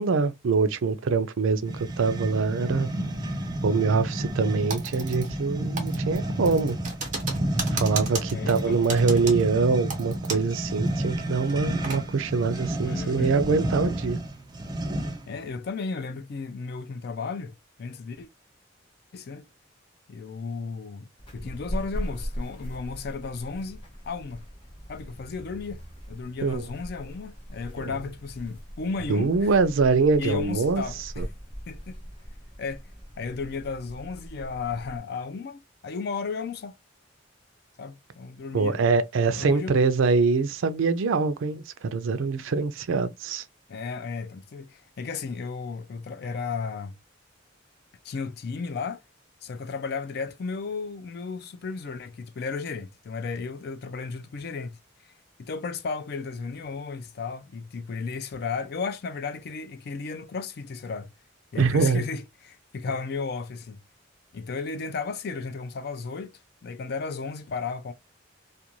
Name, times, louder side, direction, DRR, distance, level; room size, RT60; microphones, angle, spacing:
voice 1, 0.0-2.9 3.6-6.8 7.7-14.2 26.4-26.6 29.1-30.8 31.2-31.3 38.5-43.4 61.6-62.0, right 4 dB, 80° right, 0.4 m, -24 dB
sound 1, 1.6-15.4, right 1 dB, 20° right, 0.4 m, -31 dB
Typing, 4.7-5.5 5.8-10.6 10.9-11.0 11.4-12.0, right 4 dB, 40° right, 0.9 m, -34 dB
voice 2, 8.3-8.8 12.8-13.3 15.3-18.3 19.1-19.5 20.1-21.1 21.3-24.4 24.9-29.5 30.2-31.2 31.7-32.0 32.6-32.8 33.2-36.8 37.8-38.8 39.4-39.7 43.7-46.9 48.0-49.0 49.4-54.8 55.4-61.1 61.5-63.8 64.3-67.9, left 4 dB, 50° left, 0.3 m, -34 dB
sound 2, 21.2-35.0, equal, 25° left, 0.8 m, -39 dB
2.5 x 2.2 x 2.8 m
head